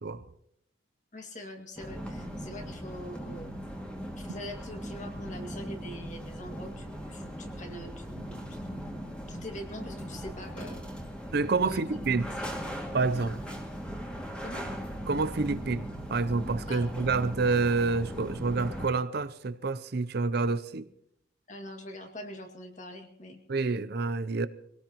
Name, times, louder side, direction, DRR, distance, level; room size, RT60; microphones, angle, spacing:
voice 1, 1.1-3.5 4.2-8.9 9.3-10.8 11.6-11.8 12.4-12.5 14.4-14.7 16.7-17.1 21.5-23.4, left 1 dB, 35° left, 2.1 m, -43 dB
sound 1, 1.8-18.9, equal, 5° left, 2.2 m, -39 dB
voice 2, 11.3-12.3 12.9-13.4 15.1-20.9 23.5-24.5, right 4 dB, 50° right, 0.6 m, -28 dB
24.0 x 17.5 x 3.0 m
head